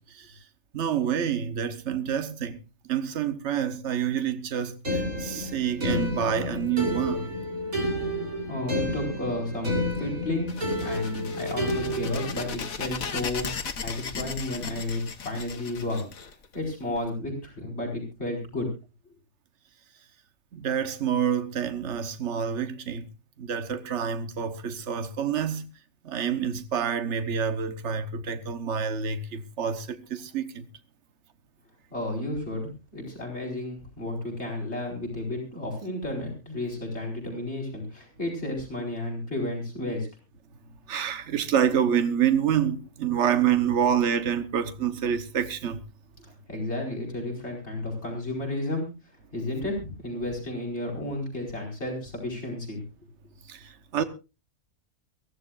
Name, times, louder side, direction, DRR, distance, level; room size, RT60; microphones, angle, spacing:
voice 1, 0.7-2.6 2.9-7.3 20.5-23.1 23.4-25.7 26.0-30.7 40.9-45.8 53.5-54.0, right 8 dB, 55° right, 1.3 m, -27 dB
sound 1, 4.8-12.5, left 1 dB, 80° right, 3.3 m, -30 dB
voice 2, 8.5-16.1 16.5-18.7 31.9-40.1 46.5-48.9 49.3-52.8, left 1 dB, 50° left, 5.3 m, -32 dB
sound 2, 10.5-17.0, left 5 dB, 75° left, 1.8 m, -37 dB
23.0 x 15.0 x 2.5 m
omnidirectional pair, 1.5 m